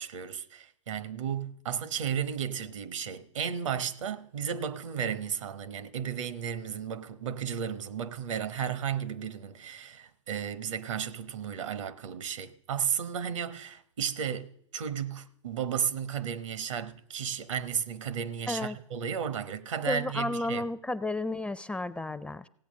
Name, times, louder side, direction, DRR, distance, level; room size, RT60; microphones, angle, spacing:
voice 1, 0.0-20.7, right 8 dB, 80° right, 1.0 m, -34 dB
voice 2, 19.9-22.5, left 2 dB, 5° left, 0.4 m, -32 dB
16.5 x 8.3 x 6.3 m
hypercardioid pair, 105°, 16 cm